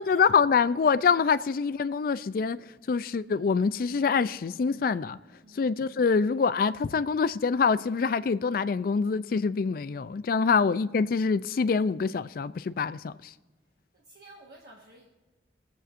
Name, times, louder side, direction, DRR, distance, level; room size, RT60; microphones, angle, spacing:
voice 1, 0.0-2.6 2.9-5.2 5.5-13.3, left 5 dB, 50° left, 0.3 m, -25 dB
voice 2, 5.4-5.8 10.5-10.7 13.9-15.1, right 2 dB, 60° right, 1.4 m, -53 dB
24.0 x 8.0 x 2.5 m
head